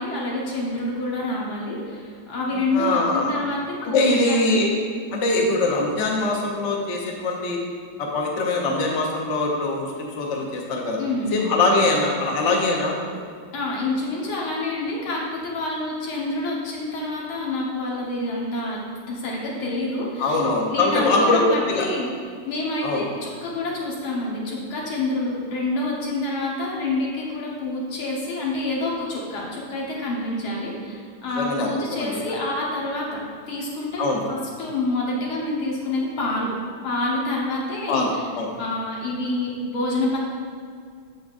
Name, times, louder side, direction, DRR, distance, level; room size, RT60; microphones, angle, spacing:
voice 1, 0.0-4.7 11.0-11.4 13.5-22.1 22.4-34.0 34.3-36.5 36.8-38.3 38.6-40.2, left 2 dB, 80° left, -3 dB, 2.2 m, -27 dB
voice 2, 2.7-3.3 3.8-4.7 5.1-7.6 8.0-11.0 11.3-13.1 20.2-21.9 22.8-23.0 31.4-32.2 34.0-34.2 37.9-38.5, left 2 dB, 50° left, -1 dB, 0.9 m, -22 dB
8.3 x 7.1 x 2.6 m, 2.1 s
omnidirectional pair, 2.2 m